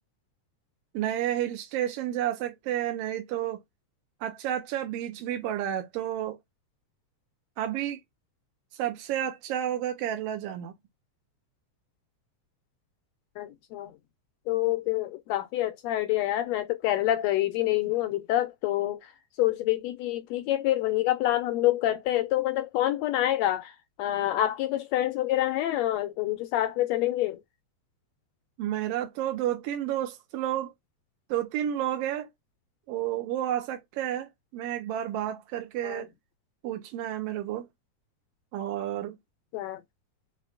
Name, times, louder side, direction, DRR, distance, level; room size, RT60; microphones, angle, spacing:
voice 1, 0.9-3.6 4.2-6.4 7.6-8.0 8.7-10.7 28.6-30.7 31.3-32.3 32.9-36.1 36.6-37.7 38.5-39.2, right 11 dB, 75° right, 1.5 m, -31 dB
voice 2, 13.4-14.0 14.5-19.1 19.4-27.4 35.8-36.1 39.5-39.8, left 14 dB, 80° left, 1.6 m, -27 dB
5.1 x 2.1 x 2.4 m
omnidirectional pair, 3.3 m